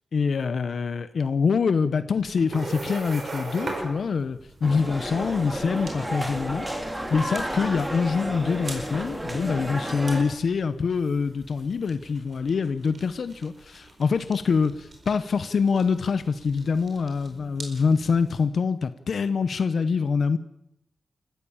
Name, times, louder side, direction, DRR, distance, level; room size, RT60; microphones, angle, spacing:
voice 1, 0.1-6.7 7.1-20.4, left 5 dB, 70° left, 12 dB, 0.9 m, -25 dB
sound 1, 2.2-18.4, right 2 dB, 45° right, 4.8 m, -41 dB
sound 2, 4.6-10.2, right 1 dB, 10° right, 2.8 m, -32 dB
29.0 x 15.0 x 7.1 m, 0.80 s
wide cardioid pair, 170°, 0 cm